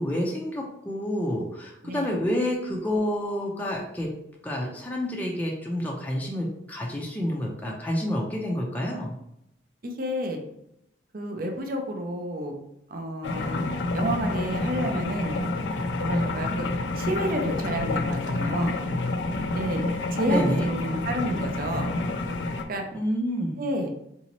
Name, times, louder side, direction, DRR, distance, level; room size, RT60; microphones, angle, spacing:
voice 1, 0.0-4.1 4.4-9.2 20.2-20.7 22.9-23.6, equal, 10° left, -2 dB, 0.4 m, -28 dB
voice 2, 1.8-2.2 9.8-10.4 11.1-12.5 12.9-13.7 13.9-15.4 16.0-16.7 17.0-18.8 19.5-21.9 22.7-22.9 23.6-23.9, equal, 50° right, 4 dB, 0.5 m, -30 dB
sound 1, 13.2-22.6, left 2 dB, 70° left, 0.4 m, -28 dB
4.0 x 2.7 x 2.9 m, 0.80 s
head